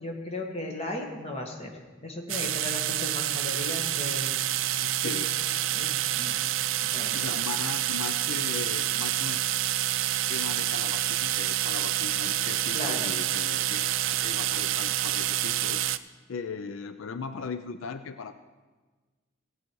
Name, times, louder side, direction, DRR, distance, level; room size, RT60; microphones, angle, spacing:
voice 1, 0.0-1.7 2.0-4.4 5.0-5.1 5.7-6.4 6.8-7.3 12.7-13.1, left 1 dB, 30° left, 1 dB, 1.6 m, -36 dB
sound 1, 2.3-16.0, right 13 dB, 80° right, 0.4 m, -28 dB
voice 2, 4.8-5.3 7.1-9.4 10.3-15.8 16.3-18.3, left 5 dB, 80° left, 10 dB, 0.5 m, -38 dB
16.5 x 8.9 x 4.6 m, 1.3 s
head